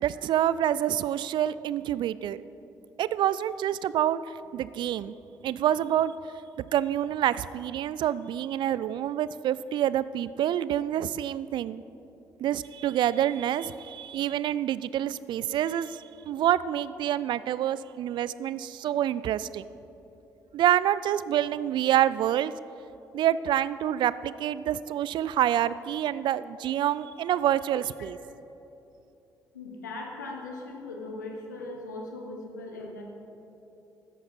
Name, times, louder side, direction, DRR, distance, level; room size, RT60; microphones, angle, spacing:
voice 1, 0.0-2.4 3.0-5.1 5.4-6.1 6.7-11.8 12.4-19.7 20.5-22.5 23.1-28.2, right 11 dB, 55° right, 17 dB, 0.4 m, -27 dB
voice 2, 29.5-33.0, left 2 dB, 85° left, 1 dB, 1.2 m, -39 dB
14.0 x 9.9 x 4.3 m, 3.0 s
figure-of-eight pair, 45°, 9 cm